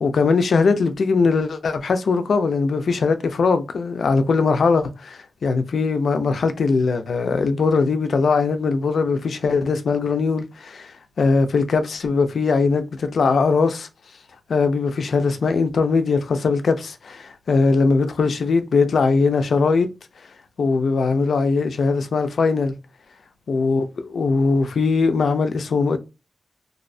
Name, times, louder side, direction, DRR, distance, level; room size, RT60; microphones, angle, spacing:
voice 1, 0.0-10.9 11.2-13.9 14.5-19.9 20.6-22.7 23.5-26.0, left 4 dB, 85° left, 0.3 m, -20 dB
2.6 x 2.0 x 2.5 m
wide cardioid pair, 180°, 0 cm